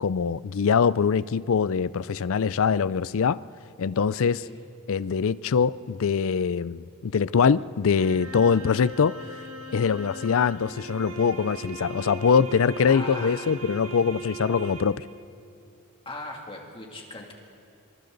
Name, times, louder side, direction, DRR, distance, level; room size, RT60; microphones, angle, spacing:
voice 1, 0.0-3.4 3.8-4.4 4.9-9.1 9.7-15.0, left 6 dB, 60° left, 18 dB, 0.4 m, -23 dB
sound 1, 8.0-15.2, right 2 dB, 70° right, 1.5 m, -39 dB
voice 2, 12.9-13.5 16.0-17.3, left 2 dB, 25° left, 0 dB, 2.7 m, -38 dB
27.0 x 26.0 x 4.0 m, 2.7 s
head